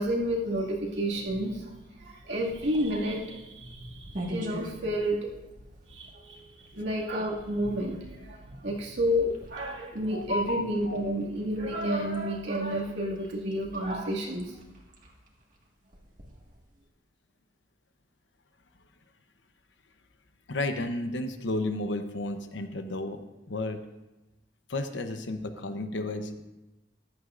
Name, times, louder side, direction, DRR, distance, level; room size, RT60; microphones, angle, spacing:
voice 1, 0.0-5.3 5.9-14.6, equal, 75° right, -3 dB, 2.2 m, -30 dB
sound 1, 2.4-16.9, equal, 45° right, 1.8 m, -47 dB
voice 2, 10.1-11.0 20.5-23.2 23.5-23.8 24.7-26.3, left 2 dB, 85° left, 7 dB, 0.9 m, -32 dB
14.5 x 11.5 x 2.6 m, 1.0 s
head